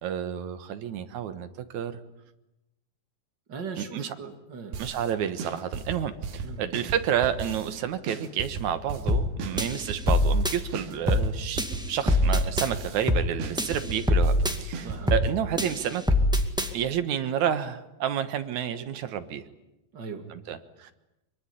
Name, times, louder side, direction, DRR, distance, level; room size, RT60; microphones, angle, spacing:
voice 1, 0.0-2.0 3.8-4.1 4.8-11.6 11.9-16.1 16.7-19.4 20.3-20.9, right 9 dB, 60° right, 10 dB, 2.4 m, -30 dB
voice 2, 3.5-4.8 6.4-6.7 14.8-15.1 19.9-20.3, right 5 dB, 35° right, 6 dB, 2.5 m, -39 dB
sound 1, 4.7-5.1 5.4-7.8 8.1-10.4 10.7-13.1 13.4-15.4, right 4 dB, 85° right, 4.2 m, -36 dB
sound 2, 9.1-9.3 9.6-10.6 11.1-11.3 11.6-12.7 13.1-13.3 13.6-14.6 15.1-15.3 15.6-16.7, left 1 dB, 5° right, 0.4 m, -24 dB
23.5 x 23.5 x 9.9 m, 0.93 s
omnidirectional pair, 4.3 m